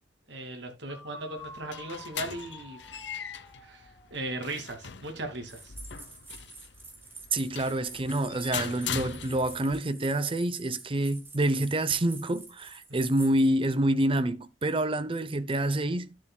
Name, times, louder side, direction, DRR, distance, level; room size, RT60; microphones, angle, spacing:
voice 1, 0.3-2.8 3.6-5.7, right 2 dB, 70° right, 2.5 m, -38 dB
sound 1, 0.9-4.8, left 2 dB, 15° left, 2.2 m, -49 dB
sound 2, 1.4-9.8, left 7 dB, 70° left, 0.8 m, -40 dB
sound 3, 5.5-13.5, right 3 dB, 10° right, 2.0 m, -48 dB
voice 2, 7.3-16.2, right 1 dB, 30° right, 0.7 m, -27 dB
12.5 x 7.3 x 2.2 m
head